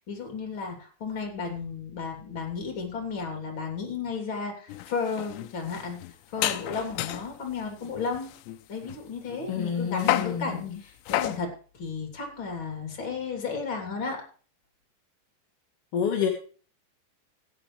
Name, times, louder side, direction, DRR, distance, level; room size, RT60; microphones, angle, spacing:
voice 1, 0.1-6.0 6.3-8.3 8.7-14.2, left 5 dB, 30° left, 2 dB, 3.2 m, -33 dB
sound 1, 4.7-7.3 7.8-9.6 10.0-10.4 11.1-11.4, left 14 dB, 80° left, 2.8 m, -31 dB
voice 2, 9.5-10.8 15.9-16.3, left 7 dB, 60° left, -1 dB, 1.6 m, -28 dB
17.5 x 9.9 x 3.2 m, 0.40 s
omnidirectional pair, 5.3 m